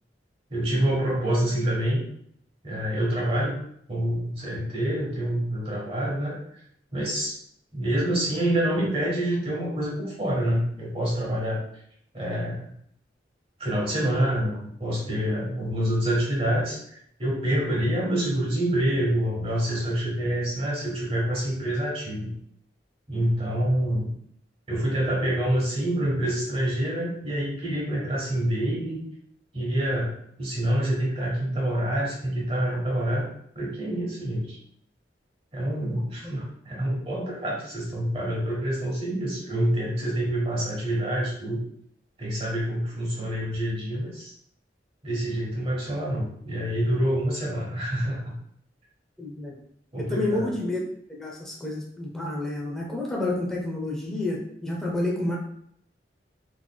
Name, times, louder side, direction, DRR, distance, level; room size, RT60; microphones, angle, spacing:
voice 1, 0.5-2.0 2.6-3.6 3.9-6.4 6.9-7.4 7.7-11.6 12.1-12.7 13.6-16.8 17.2-22.3 23.1-24.1 24.7-29.0 29.5-33.3 33.5-34.6 35.5-41.6 42.2-44.3 45.0-48.3 49.9-50.5, right 1 dB, 35° right, -4 dB, 1.1 m, -27 dB
voice 2, 49.2-49.5 49.9-50.8 51.1-55.4, left 2 dB, 5° left, -3 dB, 0.5 m, -29 dB
3.9 x 3.1 x 2.2 m, 0.68 s
head